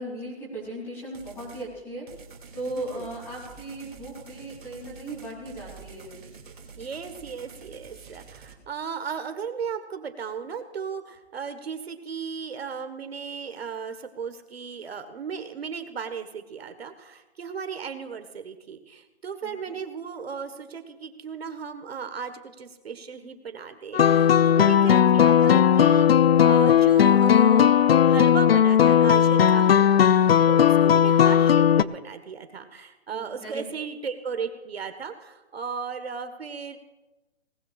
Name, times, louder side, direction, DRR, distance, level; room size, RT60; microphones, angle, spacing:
voice 1, 0.0-2.1 2.5-6.1 19.4-19.8 30.6-30.9 33.1-33.6, right 1 dB, 5° left, -4 dB, 3.0 m, -37 dB
sound 1, 1.1-1.7 2.1-8.5, right 5 dB, 50° right, 2.7 m, -47 dB
voice 2, 2.7-3.1 6.8-27.8 28.1-36.8, right 6 dB, 70° right, 8 dB, 1.5 m, -35 dB
sound 2, 23.9-31.8, left 9 dB, 65° left, 0.5 m, -17 dB
19.5 x 19.0 x 2.5 m, 1.1 s
hypercardioid pair, 175°, 32 cm